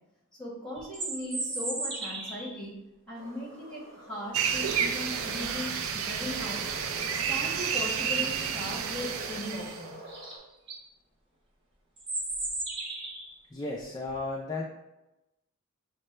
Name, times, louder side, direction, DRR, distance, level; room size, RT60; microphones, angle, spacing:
voice 1, 0.4-2.7 3.1-6.6 7.2-10.0, left 1 dB, 5° left, -4 dB, 1.2 m, -38 dB
sound 1, 0.7-2.6 7.1-7.2 7.6-8.0 10.1-10.2 10.5-10.8 12.0-13.3, right 2 dB, 25° right, 0.7 m, -35 dB
sound 2, 3.1-10.4, right 1 dB, 55° right, 1.4 m, -46 dB
sound 3, 4.3-9.9, right 7 dB, 70° right, 0.4 m, -31 dB
voice 2, 13.5-14.7, left 2 dB, 20° left, -3 dB, 0.4 m, -34 dB
6.4 x 2.2 x 3.2 m, 0.97 s
head